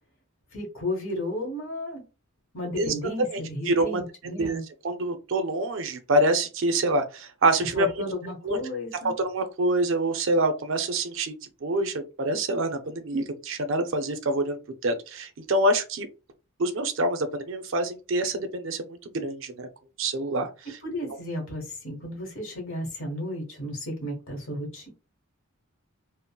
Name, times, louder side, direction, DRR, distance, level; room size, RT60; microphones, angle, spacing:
voice 1, 0.5-2.0 2.5-4.6 7.7-9.1 20.8-24.9, left 1 dB, 60° left, 1.3 m, -33 dB
voice 2, 3.7-4.6 4.8-7.9 8.4-8.6 9.0-11.3 11.6-16.1 16.6-19.7 20.0-20.5, right 1 dB, 60° right, 0.5 m, -26 dB
3.7 x 2.0 x 2.2 m
head